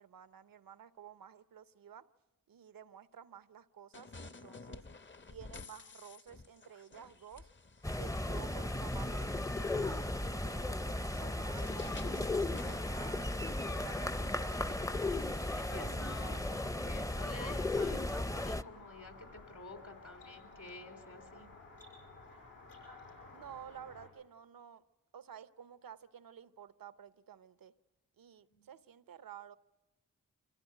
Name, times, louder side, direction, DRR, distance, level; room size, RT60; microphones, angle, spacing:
voice 1, 0.0-2.0 2.5-4.8 5.3-7.5 8.0-13.2 13.6-14.8 23.3-24.8 25.1-27.7 28.2-29.6, right 9 dB, 85° right, 0.8 m, -53 dB
sound 1, 3.9-15.9, left 3 dB, 35° left, 0.9 m, -53 dB
sound 2, 7.8-18.6, left 2 dB, 10° left, 0.6 m, -35 dB
voice 2, 15.6-21.5 28.5-28.7, left 2 dB, 65° left, 3.8 m, -50 dB
sound 3, 18.3-24.1, left 3 dB, 85° left, 6.9 m, -55 dB
25.0 x 16.5 x 9.1 m
cardioid pair, 50°, 33 cm